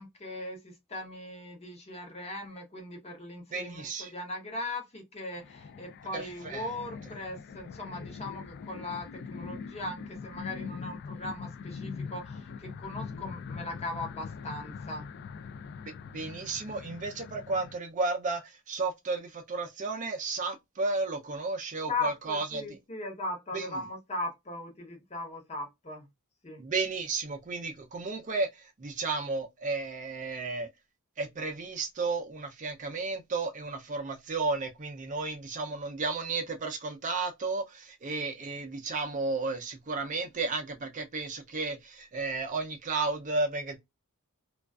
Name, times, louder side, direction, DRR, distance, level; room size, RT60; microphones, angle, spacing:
voice 1, 0.0-15.0 21.9-26.1 26.4-26.6, left 2 dB, 30° left, 0.8 m, -39 dB
voice 2, 3.5-4.1 6.1-6.7 16.1-22.8 23.5-23.7 26.6-30.7 31.2-43.8, right 3 dB, 35° right, 0.4 m, -33 dB
sound 1, 5.3-17.8, left 5 dB, 50° left, 0.3 m, -42 dB
2.4 x 2.3 x 2.2 m
head